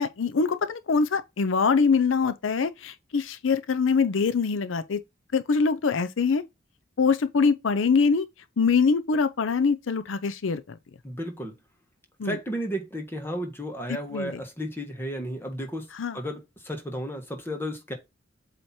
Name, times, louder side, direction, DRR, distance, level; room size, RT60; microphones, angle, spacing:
voice 1, 0.0-5.0 5.3-6.4 7.0-8.3 8.6-10.6 12.2-12.4 14.1-14.4 15.9-16.2, left 5 dB, 80° left, 0.5 m, -24 dB
voice 2, 11.0-11.5 12.2-15.8 16.1-17.9, equal, 10° left, 1.4 m, -33 dB
7.8 x 2.9 x 4.3 m
head